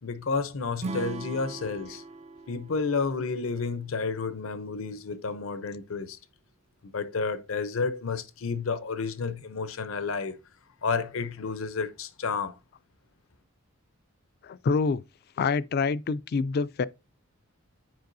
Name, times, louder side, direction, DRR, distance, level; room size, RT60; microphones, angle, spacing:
voice 1, 0.0-2.0 2.5-6.2 6.8-10.4 10.8-12.5, left 4 dB, 80° left, 0.7 m, -31 dB
Acoustic guitar / Strum, 0.8-4.1, right 3 dB, 30° right, 0.4 m, -40 dB
voice 2, 14.4-15.0 15.4-16.9, left 4 dB, 50° left, 0.3 m, -26 dB
9.3 x 4.6 x 2.6 m
head